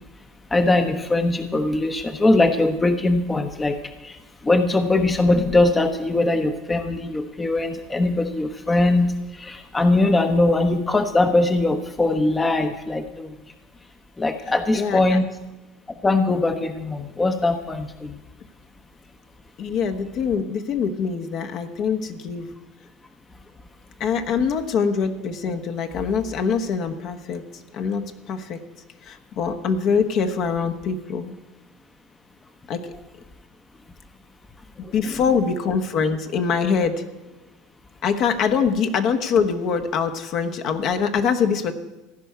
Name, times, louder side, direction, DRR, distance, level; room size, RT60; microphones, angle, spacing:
voice 1, 0.5-3.8 4.0-4.2 4.4-13.3 14.2-15.3 16.0-18.2 34.8-35.2, left 2 dB, 15° left, 7 dB, 0.9 m, -21 dB
voice 2, 14.7-15.2 19.6-22.5 24.0-27.4 27.7-28.6 29.0-31.3 32.7-32.9 34.8-37.0 38.0-41.7, left 6 dB, 50° left, 6 dB, 1.3 m, -24 dB
15.5 x 5.6 x 9.6 m, 1.1 s
figure-of-eight pair, 75°, 0 cm